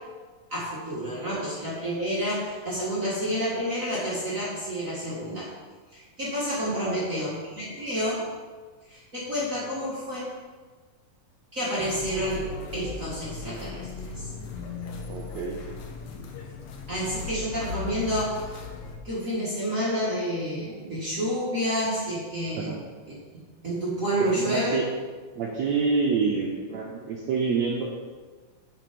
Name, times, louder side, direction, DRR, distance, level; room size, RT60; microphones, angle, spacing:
voice 1, 0.5-5.5 5.9-8.3 8.9-10.2 11.5-12.4 12.7-13.9 14.2-14.3 16.9-18.6 19.0-22.8 23.6-24.8, equal, 35° right, -8 dB, 1.4 m, -29 dB
voice 2, 6.7-7.2 15.1-15.6 22.6-22.8 24.2-24.8 25.3-27.8, right 5 dB, 75° right, -2 dB, 1.6 m, -27 dB
sound 1, 11.8-19.0, left 4 dB, 75° left, 2.4 m, -38 dB
7.7 x 6.2 x 5.1 m, 1.4 s
omnidirectional pair, 4.2 m